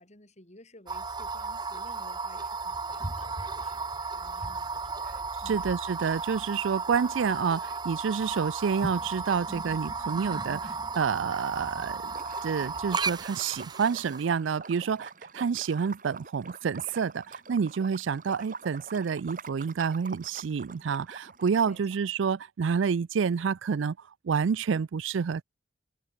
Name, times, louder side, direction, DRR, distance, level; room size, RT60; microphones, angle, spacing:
voice 1, 0.0-5.7 21.6-21.9, left 1 dB, 35° left, 5.8 m, -54 dB
sound 1, 0.9-14.2, right 4 dB, 20° right, 1.1 m, -34 dB
voice 2, 5.5-12.0 12.4-24.0 24.2-25.4, right 6 dB, 80° right, 0.4 m, -28 dB
Liquid, 12.1-22.0, right 4 dB, 45° right, 3.0 m, -45 dB
head